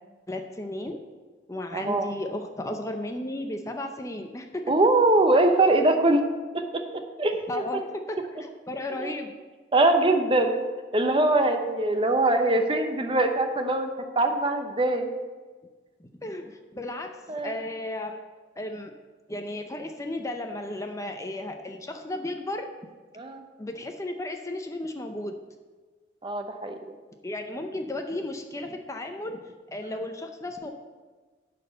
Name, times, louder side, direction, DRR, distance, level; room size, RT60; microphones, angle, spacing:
voice 1, 0.3-1.0 1.5-4.7 7.5-9.3 16.0-17.1 17.4-18.2 18.6-18.9 19.3-22.7 23.6-25.3 27.2-29.4 29.7-30.7, left 1 dB, 15° left, 5 dB, 0.5 m, -34 dB
voice 2, 1.7-2.1 4.7-6.2 6.5-6.8 7.2-7.6 8.9-9.1 9.7-10.6 10.9-13.9 14.2-15.1 17.3-17.5 23.2-23.4 26.2-26.7 29.8-30.0, right 2 dB, 25° right, 6 dB, 0.8 m, -22 dB
11.5 x 4.2 x 7.9 m, 1.4 s
head